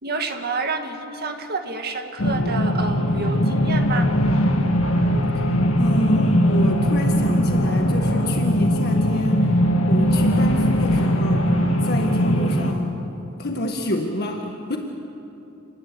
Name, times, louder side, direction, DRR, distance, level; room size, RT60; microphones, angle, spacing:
voice 1, 0.0-4.1, right 3 dB, 45° right, 5 dB, 2.1 m, -29 dB
sound 1, 2.2-12.7, equal, 70° left, 2.1 m, -20 dB
voice 2, 5.8-9.5 9.9-11.5 11.8-12.9 13.4-14.8, left 1 dB, 50° left, 2 dB, 1.7 m, -27 dB
28.5 x 20.0 x 8.6 m, 2.9 s
head